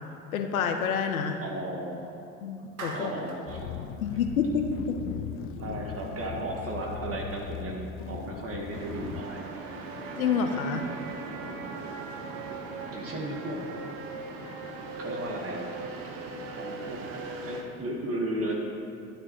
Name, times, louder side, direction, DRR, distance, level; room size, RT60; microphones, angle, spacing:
voice 1, 0.3-1.4 2.4-3.1 4.0-5.0 10.2-10.9, left 6 dB, 75° left, 6 dB, 0.8 m, -28 dB
voice 2, 1.4-2.2 2.9-3.9 5.5-9.4 12.9-13.6 15.0-15.7 16.5-18.5, right 1 dB, 35° right, 0 dB, 1.4 m, -35 dB
Clapping, 2.8-3.5, right 2 dB, 80° right, 1.3 m, -39 dB
sound 1, 3.5-9.2, left 9 dB, 35° left, 0.4 m, -38 dB
sound 2, 8.7-17.6, right 3 dB, 60° right, 1.2 m, -38 dB
12.5 x 9.8 x 3.0 m, 2.6 s
figure-of-eight pair, 70°, 42 cm